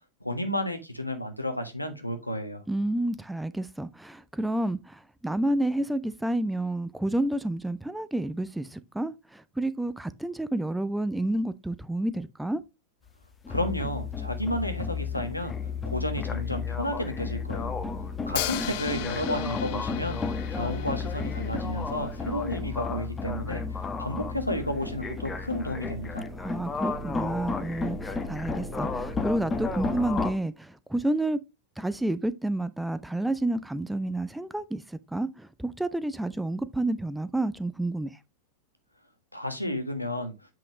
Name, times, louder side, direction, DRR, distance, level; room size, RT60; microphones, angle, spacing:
voice 1, 0.2-2.6 13.5-15.5 15.8-17.7 18.3-26.3 39.3-40.3, left 1 dB, 85° left, 1.3 m, -32 dB
voice 2, 2.7-12.6 26.4-31.4 31.8-38.1, right 1 dB, 5° right, 0.5 m, -30 dB
sound 1, 13.1-30.3, left 4 dB, 15° left, 1.1 m, -32 dB
Hi-hat, 18.4-22.3, left 14 dB, 50° left, 0.7 m, -37 dB
7.7 x 6.0 x 3.0 m
figure-of-eight pair, 90°, 0 cm